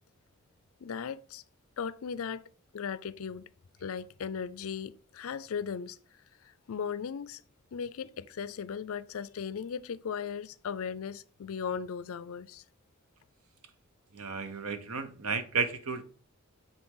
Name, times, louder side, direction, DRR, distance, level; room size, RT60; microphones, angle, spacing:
voice 1, 0.8-1.4 1.8-2.4 2.7-3.5 3.8-6.0 6.4-7.4 7.7-12.6, left 6 dB, 75° left, 0.4 m, -37 dB
voice 2, 14.1-16.0, right 5 dB, 90° right, 1.0 m, -33 dB
8.7 x 4.3 x 3.8 m
head